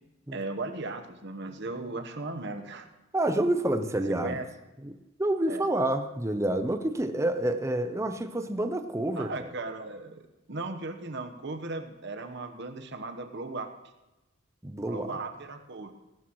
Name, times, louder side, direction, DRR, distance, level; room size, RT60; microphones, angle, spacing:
voice 1, 0.3-2.9 4.2-4.5 5.5-5.6 9.1-10.2 10.5-13.7 14.9-15.9, right 3 dB, 60° right, 6 dB, 1.1 m, -37 dB
voice 2, 3.1-4.4 4.8-4.9 5.2-9.5 14.6-15.2, right 1 dB, 15° right, 8 dB, 0.6 m, -28 dB
18.0 x 12.5 x 3.1 m, 1.0 s
head